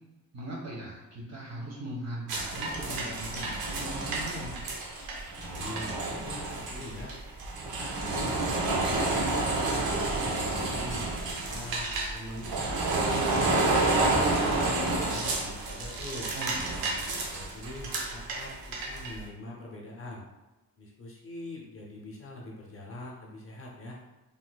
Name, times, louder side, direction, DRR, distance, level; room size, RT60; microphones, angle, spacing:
voice 1, 0.3-4.6 16.3-17.2, right 1 dB, 50° right, -4 dB, 1.1 m, -40 dB
sound 1, 2.3-19.2, right 2 dB, 90° right, 0.7 m, -30 dB
voice 2, 5.4-7.1 7.6-9.8 10.2-13.6 14.0-16.3 17.3-20.2 20.8-24.0, left 2 dB, 40° left, -1 dB, 0.6 m, -43 dB
3.9 x 2.7 x 2.2 m, 1.1 s
wide cardioid pair, 150°, 35 cm